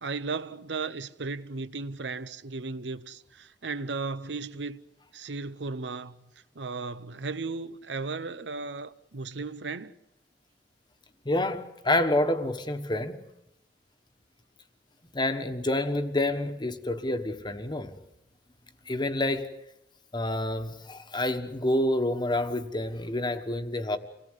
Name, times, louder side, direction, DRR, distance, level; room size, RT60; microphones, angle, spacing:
voice 1, 0.0-4.8 5.1-6.2 6.5-9.9, right 4 dB, 75° right, 0.8 m, -35 dB
voice 2, 11.2-13.2 15.1-17.9 18.9-19.5 20.1-24.0, left 1 dB, 25° left, 1.3 m, -28 dB
26.5 x 18.5 x 8.1 m
head